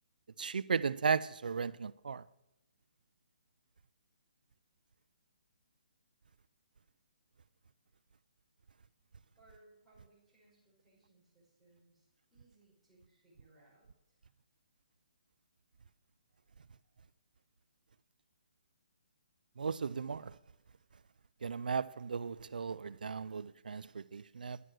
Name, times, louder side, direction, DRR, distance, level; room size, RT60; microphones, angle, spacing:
voice 1, 0.4-2.2 19.6-20.4 21.4-24.6, right 5 dB, 85° right, 0.4 m, -36 dB
voice 2, 9.4-13.9, right 2 dB, ahead, 5.1 m, -66 dB
11.0 x 7.7 x 6.3 m
hypercardioid pair, 160°, 5 cm